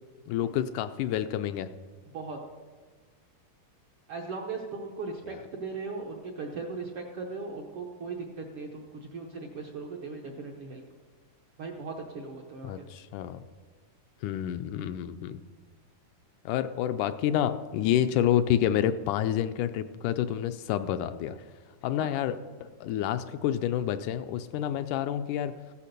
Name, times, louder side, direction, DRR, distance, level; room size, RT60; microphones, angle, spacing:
voice 1, 0.3-1.7 5.3-5.4 12.6-13.4 14.2-15.4 16.5-21.4 21.8-25.7, left 10 dB, 80° left, 10 dB, 1.9 m, -29 dB
voice 2, 4.1-10.8 11.6-12.9 22.0-22.1, right 4 dB, 70° right, 1 dB, 1.4 m, -38 dB
15.0 x 8.4 x 6.7 m, 1.5 s
omnidirectional pair, 3.8 m